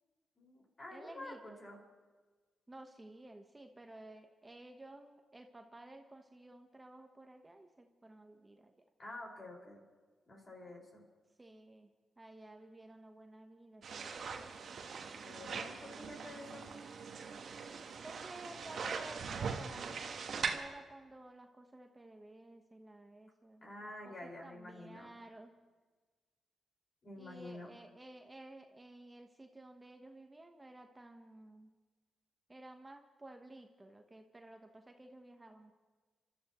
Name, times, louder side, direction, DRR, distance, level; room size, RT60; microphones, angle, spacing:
voice 1, 0.4-1.8 9.0-9.8 10.3-11.0 15.2-16.6 23.6-25.1 27.0-27.7, left 1 dB, 45° left, -1 dB, 5.4 m, -49 dB
voice 2, 0.9-1.6 2.7-8.7 11.4-11.9 12.2-14.5 18.0-25.5 27.2-31.7 32.5-35.7, right 2 dB, 25° right, 4 dB, 1.2 m, -54 dB
sound 1, 13.8-20.6, right 5 dB, 65° right, 1.3 m, -41 dB
28.0 x 13.0 x 3.1 m, 1.4 s
supercardioid pair, 55°, 0 cm